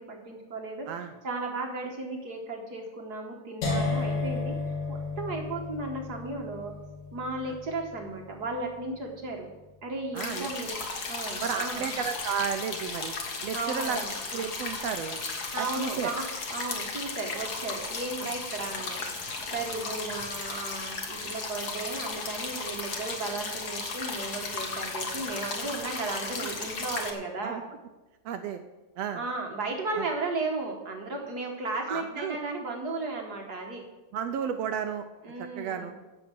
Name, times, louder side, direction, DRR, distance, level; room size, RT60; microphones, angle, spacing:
voice 1, 0.0-4.5 4.9-6.7 7.1-9.5 9.8-10.8 11.1-11.9 13.5-14.1 15.5-19.0 19.5-27.6 29.1-33.8 35.2-36.0, right 3 dB, 45° right, 1 dB, 1.3 m, -35 dB
sound 1, 3.6-9.5, left 3 dB, 85° left, 3.6 m, -34 dB
voice 2, 10.1-10.5 11.4-13.1 13.4-14.0 14.3-15.2 15.6-16.1 18.2-18.3 26.4-26.5 27.4-27.6 28.2-28.6 29.0-29.2 30.0-30.1 31.9-32.4 34.1-35.0 35.4-35.9, right 7 dB, 80° right, 8 dB, 1.5 m, -33 dB
sound 2, 10.2-27.1, left 4 dB, 45° left, 1.3 m, -35 dB
14.5 x 5.4 x 7.6 m, 1.1 s
omnidirectional pair, 3.5 m